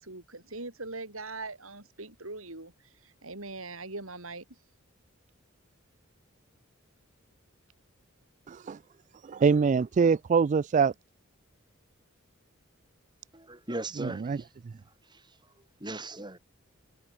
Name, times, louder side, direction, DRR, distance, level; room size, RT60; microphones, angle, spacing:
voice 1, 0.0-4.4, right 3 dB, 90° right, 7.8 m, -41 dB
voice 2, 8.5-8.8 9.2-10.9 14.0-14.4, right 5 dB, 35° right, 0.3 m, -24 dB
voice 3, 13.3-14.5 15.0-16.4, right 2 dB, 20° right, 6.2 m, -39 dB
head